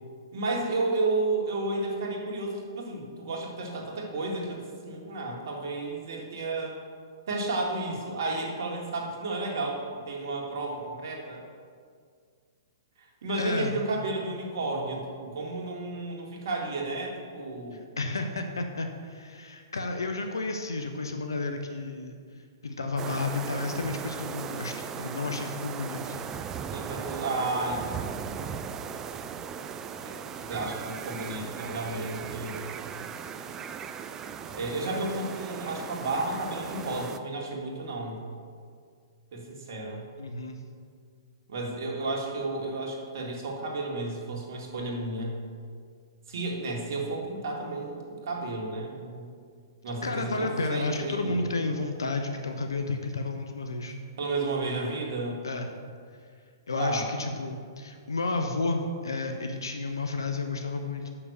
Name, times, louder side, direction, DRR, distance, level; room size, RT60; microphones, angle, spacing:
voice 1, 0.3-6.8 7.3-11.4 13.2-17.9 26.7-28.7 30.0-30.2 30.5-32.6 34.5-38.2 39.3-40.0 41.5-45.4 46.3-49.3 49.8-51.5 54.2-55.4 56.8-57.1, right 2 dB, 60° right, -1 dB, 1.8 m, -32 dB
voice 2, 13.4-13.7 18.0-22.2 22.6-26.2 40.2-40.6 50.0-53.9 55.4-55.7 56.7-61.1, left 3 dB, 80° left, 5 dB, 0.7 m, -31 dB
sound 1, 23.0-37.2, right 7 dB, 20° right, 0.4 m, -37 dB
6.2 x 5.8 x 6.6 m, 2.1 s
figure-of-eight pair, 115°, 2 cm